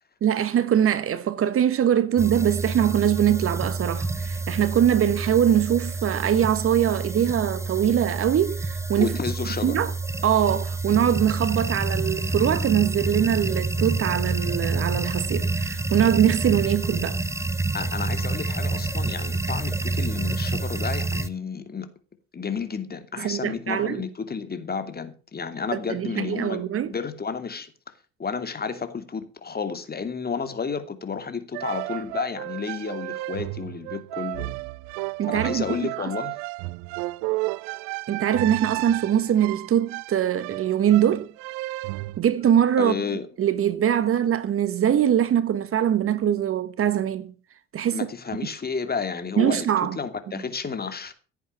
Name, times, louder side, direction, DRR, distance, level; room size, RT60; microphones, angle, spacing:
voice 1, 0.2-9.2 9.6-9.9 10.2-17.2 23.2-24.0 25.7-26.9 35.2-35.6 36.0-36.1 38.1-41.3 42.2-43.0 43.4-47.3 47.7-48.1 49.4-50.0 50.4-50.5, right 10 dB, 45° right, 1.4 m, -22 dB
sound 1, 2.2-21.3, right 3 dB, 10° right, 1.2 m, -28 dB
voice 2, 9.0-9.9 17.7-21.9 22.3-27.7 28.2-34.5 35.3-36.4 42.8-43.3 47.9-51.1, left 5 dB, 30° left, 2.7 m, -31 dB
sound 2, 31.5-42.2, right 21 dB, 65° right, 0.6 m, -33 dB
16.0 x 8.6 x 6.7 m
hypercardioid pair, 55°, 31 cm